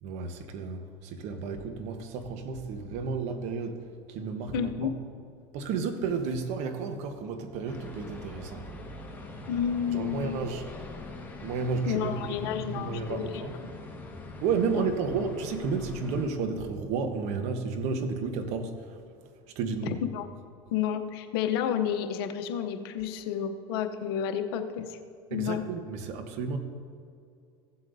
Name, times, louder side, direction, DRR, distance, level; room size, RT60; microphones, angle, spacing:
voice 1, 0.0-4.9 5.5-8.6 9.9-10.7 11.4-13.5 14.4-20.0 25.3-26.6, right 5 dB, 60° right, 7 dB, 1.1 m, -32 dB
voice 2, 4.5-4.9 9.5-10.4 11.9-13.4 14.7-14.9 19.9-20.3 20.7-25.0 25.3-25.6, left 9 dB, 75° left, 7 dB, 0.8 m, -31 dB
sound 1, 7.7-16.3, left 2 dB, 15° left, 1.6 m, -43 dB
15.5 x 7.9 x 2.7 m, 2.5 s
hypercardioid pair, 90°, 13 cm